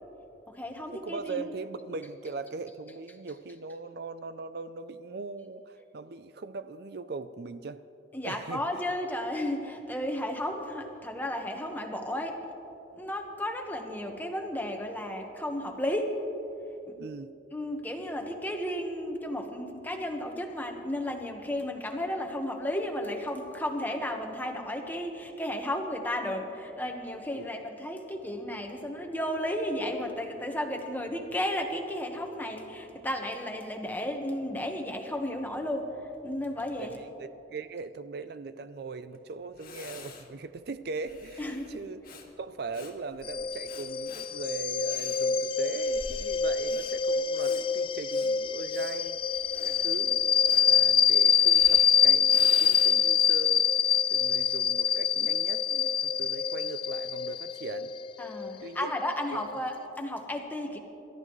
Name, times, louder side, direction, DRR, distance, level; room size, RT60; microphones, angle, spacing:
voice 1, 0.5-1.5 8.1-12.4 12.9-16.2 16.9-17.0 17.5-37.0 41.4-41.8 58.2-60.8, left 1 dB, 10° left, 3 dB, 1.3 m, -33 dB
voice 2, 1.0-7.8 8.2-8.8 17.0-17.3 27.4-27.5 36.8-42.0 42.4-49.2 49.6-53.7 54.1-57.9 58.6-59.1, right 4 dB, 60° right, 12 dB, 0.5 m, -40 dB
Breathing, 39.1-39.2 39.6-53.2, left 3 dB, 50° left, 1.9 m, -47 dB
sound 1, 43.2-59.5, left 7 dB, 30° left, 0.3 m, -25 dB
28.0 x 13.5 x 3.2 m, 2.9 s
head